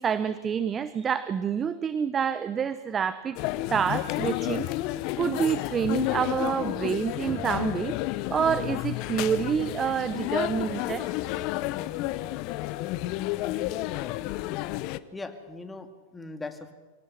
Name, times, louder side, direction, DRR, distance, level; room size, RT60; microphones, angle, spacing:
voice 1, 0.0-3.4 3.7-4.7 5.2-8.0 8.3-11.1, right 7 dB, 25° right, 14 dB, 0.8 m, -27 dB
sound 1, 3.4-15.0, left 17 dB, 50° left, 0.8 m, -31 dB
voice 2, 15.1-16.7, left 3 dB, 10° left, 6 dB, 2.4 m, -39 dB
24.5 x 17.5 x 6.7 m, 1.3 s
hypercardioid pair, 95°, 0 cm